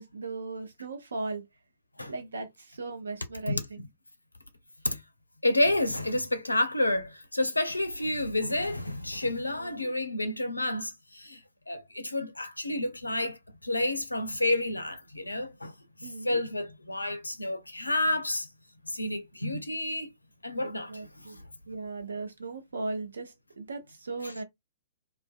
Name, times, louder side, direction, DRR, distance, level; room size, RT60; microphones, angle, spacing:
voice 1, 0.0-1.4 2.1-3.9 9.5-9.9 16.0-16.4 20.6-21.4 21.7-24.4, right 3 dB, 70° right, 0.6 m, -38 dB
voice 2, 3.5-3.9 4.8-5.0 5.4-11.4 11.7-15.7 16.0-18.5 18.9-20.1 20.4-20.9 21.2-21.4, left 1 dB, 80° left, 0.4 m, -30 dB
2.5 x 2.1 x 2.3 m
figure-of-eight pair, 115°, 0 cm